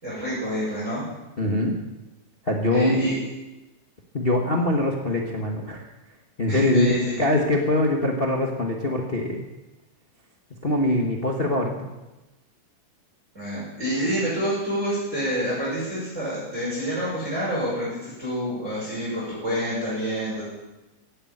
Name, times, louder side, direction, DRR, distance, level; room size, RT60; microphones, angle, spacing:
voice 1, 0.0-1.0 2.7-3.2 6.5-7.1 13.3-20.4, equal, 20° right, -7 dB, 6.2 m, -28 dB
voice 2, 1.4-1.8 2.4-3.0 4.1-5.9 6.4-9.4 10.6-11.7, left 1 dB, 30° left, 2 dB, 1.0 m, -23 dB
16.0 x 8.9 x 8.8 m, 1.1 s
omnidirectional pair, 3.5 m